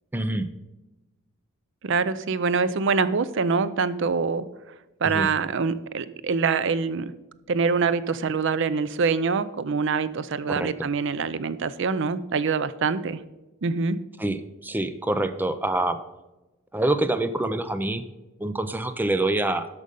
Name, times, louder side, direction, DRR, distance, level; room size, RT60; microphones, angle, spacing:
voice 1, 0.1-0.5 5.0-5.3 10.5-10.7 14.2-16.0 16.7-18.0 18.4-19.7, right 2 dB, 10° right, 10 dB, 0.5 m, -26 dB
voice 2, 1.8-4.5 5.0-7.1 7.5-13.2 13.6-14.0, right 5 dB, 60° right, 15 dB, 0.5 m, -25 dB
13.0 x 5.3 x 5.3 m, 1.1 s
head